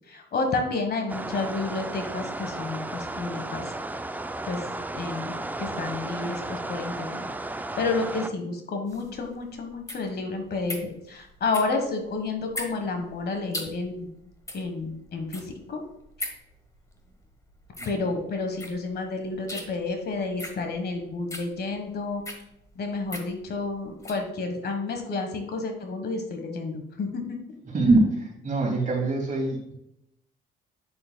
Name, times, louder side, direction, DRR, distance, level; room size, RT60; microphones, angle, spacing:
voice 1, 0.1-3.7 4.5-4.6 4.9-7.2 7.8-14.1 14.5-15.8 17.8-22.2 22.7-27.4, left 3 dB, 55° left, 4 dB, 1.3 m, -30 dB
sound 1, 1.1-8.3, right 2 dB, 10° right, 0.4 m, -34 dB
sound 2, 8.9-24.3, left 1 dB, 15° left, 1.3 m, -40 dB
voice 2, 27.7-29.7, right 2 dB, 40° right, 0 dB, 2.4 m, -23 dB
8.5 x 6.8 x 2.2 m, 0.82 s
cardioid pair, 90°, 20 cm